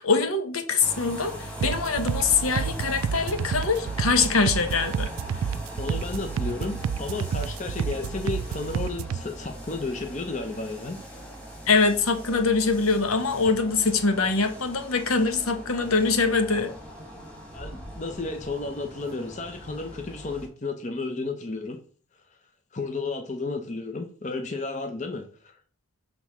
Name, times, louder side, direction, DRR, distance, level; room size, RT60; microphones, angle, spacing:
voice 1, 0.0-5.1 11.7-16.7, left 4 dB, 85° left, 8 dB, 1.0 m, -23 dB
sound 1, 0.8-20.5, right 1 dB, 5° left, 1.6 m, -40 dB
sound 2, 1.6-9.2, right 7 dB, 80° right, 0.3 m, -30 dB
voice 2, 5.8-11.0 17.5-21.8 22.7-25.6, left 3 dB, 35° left, 5 dB, 0.7 m, -33 dB
6.2 x 3.6 x 6.0 m, 0.42 s
head